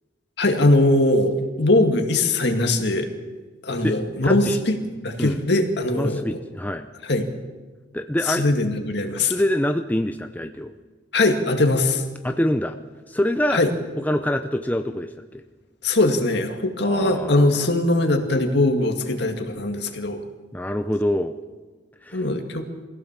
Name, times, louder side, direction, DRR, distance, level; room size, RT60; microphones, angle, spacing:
voice 1, 0.4-3.1 3.6-6.4 7.1-7.3 8.3-9.3 11.1-12.0 13.5-13.7 15.8-20.2 22.1-22.7, left 2 dB, 65° left, 5 dB, 2.2 m, -21 dB
voice 2, 4.2-4.6 5.2-5.4 5.9-6.9 7.9-8.5 9.2-10.7 12.2-12.8 13.1-13.6 14.0-15.4 16.8-17.7 20.5-21.4 22.0-22.2, left 1 dB, 10° left, 6 dB, 0.6 m, -25 dB
22.5 x 16.0 x 7.5 m, 1.3 s
head